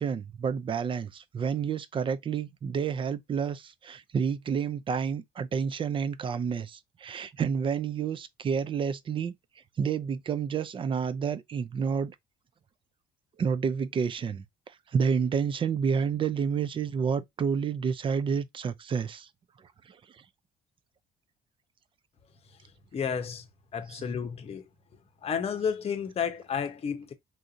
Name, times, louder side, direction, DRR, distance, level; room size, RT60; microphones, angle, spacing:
voice 1, 0.0-9.4 9.8-12.2 13.4-19.3 19.9-20.0 23.9-24.0, right 6 dB, 30° right, 0.4 m, -29 dB
voice 2, 22.9-23.5 23.7-24.7 25.2-27.1, left 7 dB, 35° left, 0.8 m, -31 dB
3.7 x 2.7 x 2.5 m
cardioid pair, 110°, 17 cm